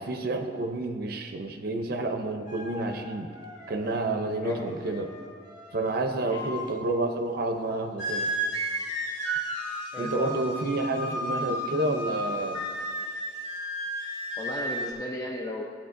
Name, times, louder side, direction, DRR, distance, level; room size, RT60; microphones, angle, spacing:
voice 1, 0.0-3.3 3.7-5.1 5.7-8.3 10.0-12.6, right 2 dB, 55° right, 5 dB, 0.6 m, -29 dB
sound 1, 2.5-6.8 8.0-14.9, right 1 dB, 80° left, 2.2 m, -34 dB
voice 2, 4.4-4.9 6.2-6.5 9.9-10.4 14.4-15.6, left 1 dB, 20° left, -1 dB, 0.6 m, -35 dB
14.5 x 8.4 x 2.5 m, 2.2 s
head